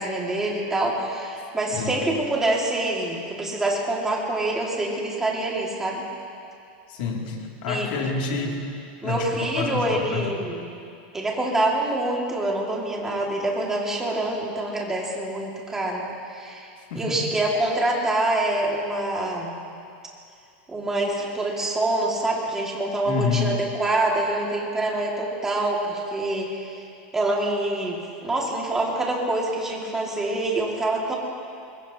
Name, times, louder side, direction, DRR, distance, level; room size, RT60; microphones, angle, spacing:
voice 1, 0.0-6.0 7.7-7.9 9.0-10.7 11.1-16.7 16.9-19.6 20.7-26.8 27.1-31.2, right 2 dB, 10° right, -2 dB, 2.2 m, -26 dB
voice 2, 1.7-2.1 6.9-8.7 9.0-10.4 16.9-17.2 23.1-23.5, left 5 dB, 65° left, -1 dB, 2.7 m, -28 dB
23.0 x 21.0 x 2.9 m, 2.5 s
supercardioid pair, 165°, 6 cm